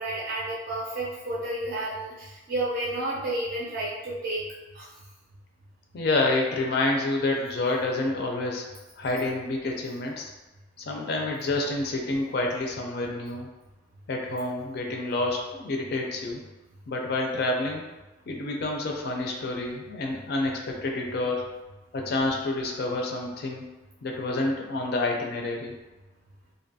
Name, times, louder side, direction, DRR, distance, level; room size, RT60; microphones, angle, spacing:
voice 1, 0.0-4.4 4.7-4.9, right 1 dB, 55° right, -7 dB, 0.5 m, -31 dB
voice 2, 5.9-8.7 9.0-10.3 10.8-13.5 14.1-16.4 16.9-17.9 18.3-21.4 21.9-23.7 24.0-25.7, left 2 dB, 55° left, 1 dB, 0.4 m, -28 dB
2.6 x 2.2 x 2.6 m, 1.1 s
head